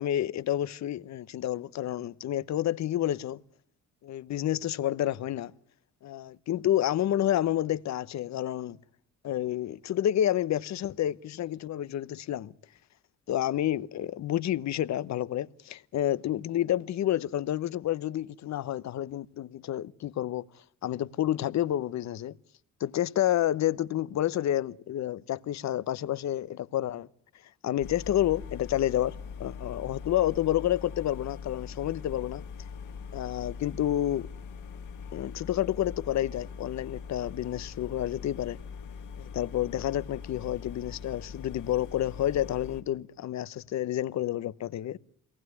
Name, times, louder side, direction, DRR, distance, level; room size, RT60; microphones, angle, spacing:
voice 1, 0.0-3.4 4.0-5.5 6.0-8.8 9.2-12.5 13.3-20.4 20.8-22.3 22.8-27.1 27.6-32.4 33.1-34.3 35.1-38.6 39.2-45.0, left 12 dB, 65° left, 0.9 m, -29 dB
sound 1, 27.8-42.8, left 6 dB, 80° left, 2.5 m, -42 dB
23.0 x 19.0 x 9.7 m
cardioid pair, 90°, 30 cm